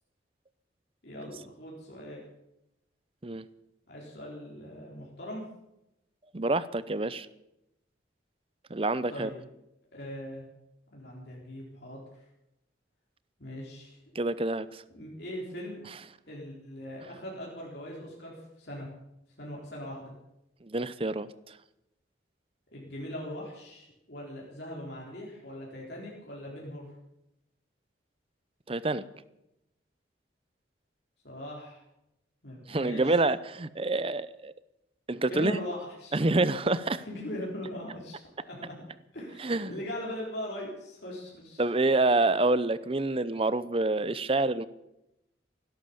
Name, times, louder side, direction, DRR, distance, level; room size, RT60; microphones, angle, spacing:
voice 1, 1.0-2.2 3.9-5.4 9.1-9.4 9.9-10.4 10.9-12.2 13.4-14.0 14.9-15.8 16.3-18.9 19.4-20.1 22.7-26.9 31.2-31.8 32.4-33.2 35.3-36.2 37.1-38.7 39.1-41.6, left 1 dB, 60° left, -4 dB, 3.9 m, -40 dB
voice 2, 6.3-7.3 8.7-9.3 14.1-14.8 20.6-21.6 28.7-29.0 32.7-34.5 35.1-35.6 36.1-37.0 39.4-39.8 41.6-44.7, right 2 dB, 30° right, 16 dB, 0.7 m, -27 dB
16.5 x 12.0 x 7.1 m, 0.88 s
head